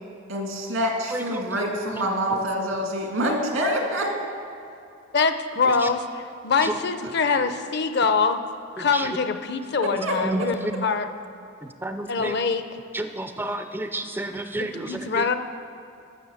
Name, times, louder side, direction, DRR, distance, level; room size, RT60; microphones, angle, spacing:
voice 1, 0.3-4.1 9.8-10.5, equal, 85° right, 1 dB, 2.0 m, -26 dB
voice 2, 1.1-1.5 2.0-2.1 6.6-6.7 8.8-9.1 10.2-10.4 11.8-12.4 12.9-15.2, right 1 dB, 10° right, 8 dB, 0.4 m, -30 dB
voice 3, 5.1-8.4 8.8-11.1 12.1-12.6 14.6-15.3, left 4 dB, 55° left, 9 dB, 0.6 m, -24 dB
12.0 x 6.9 x 7.1 m, 2.7 s
head